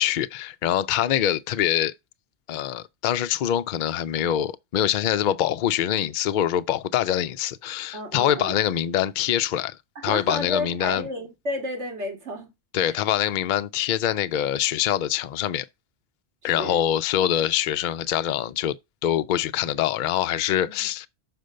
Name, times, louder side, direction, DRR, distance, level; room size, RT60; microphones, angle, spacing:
voice 1, 0.0-1.9 2.5-9.8 10.0-11.1 12.7-15.7 16.4-18.8 19.0-21.1, left 11 dB, 55° left, 0.6 m, -24 dB
voice 2, 7.9-8.6 10.0-12.5 12.8-13.0 16.4-16.8 20.7-20.9, equal, 85° right, 2.4 m, -32 dB
6.5 x 4.5 x 6.5 m
omnidirectional pair, 1.2 m